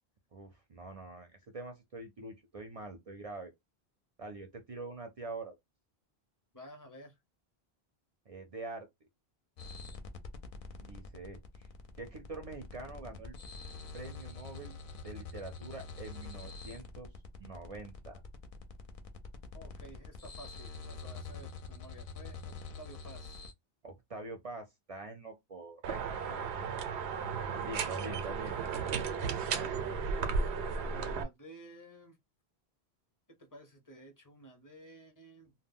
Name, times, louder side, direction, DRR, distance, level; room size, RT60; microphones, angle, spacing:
voice 1, 0.3-3.5 4.2-5.5 8.3-8.9 10.8-11.7 12.0-13.3 13.9-14.8 15.0-17.1 17.4-18.2 23.8-26.0 26.3-26.5 27.5-28.6 29.5-29.7, right 3 dB, 45° right, 0.5 m, -45 dB
voice 2, 6.5-7.2 19.5-23.4 27.8-28.4 29.4-30.0 30.6-32.2 33.3-35.5, equal, 20° left, 0.7 m, -53 dB
sound 1, 9.6-23.5, left 4 dB, 60° left, 0.7 m, -46 dB
sound 2, 25.8-31.2, right 5 dB, 90° right, 0.8 m, -34 dB
2.1 x 2.1 x 3.5 m
omnidirectional pair, 1.1 m